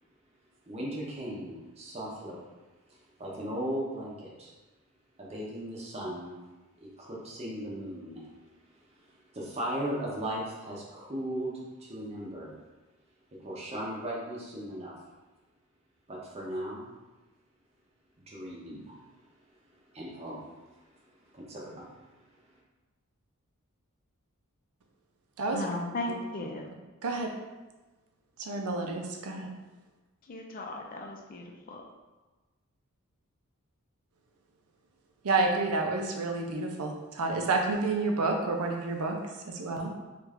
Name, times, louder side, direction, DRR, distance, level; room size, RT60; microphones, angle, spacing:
voice 1, 0.7-2.5 2.9-4.5 5.2-6.3 6.8-8.3 8.8-11.5 11.8-12.5 13.4-14.9 16.1-16.8 18.3-19.0 19.9-20.9 21.3-22.1, right 1 dB, 30° right, -4 dB, 0.7 m, -37 dB
voice 2, 25.5-26.7 30.3-31.8, left 2 dB, 40° left, 1 dB, 0.4 m, -36 dB
voice 3, 28.4-29.5 35.2-39.1 39.5-39.9, right 3 dB, 85° right, 2 dB, 0.5 m, -29 dB
3.2 x 2.4 x 3.4 m, 1.2 s
head